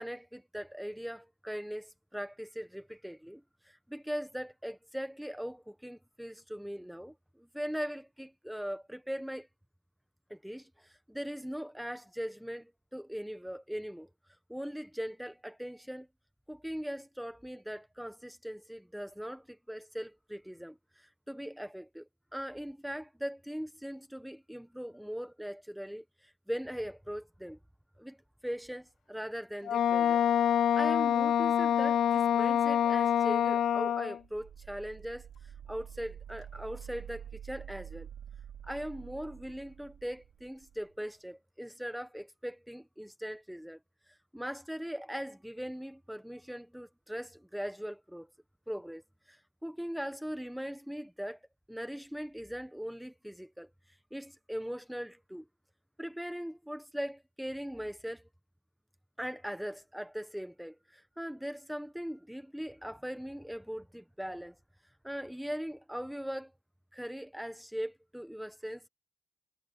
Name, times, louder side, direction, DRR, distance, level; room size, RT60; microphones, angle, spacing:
voice 1, 0.0-9.5 10.3-14.1 14.5-16.1 16.5-27.6 28.0-28.2 28.4-30.2 30.7-35.3 35.7-38.1 38.6-43.8 44.3-48.3 48.7-49.0 49.3-51.4 51.7-53.7 54.1-55.5 56.0-58.2 59.2-64.6 65.0-66.5 66.9-68.9, equal, ahead, 1.2 m, -40 dB
Wind instrument woodwind instrument, 29.6-34.2, left 9 dB, 85° left, 0.4 m, -26 dB
sound 1, 34.2-40.8, right 9 dB, 70° right, 5.7 m, -48 dB
wide cardioid pair, 170°, 0 cm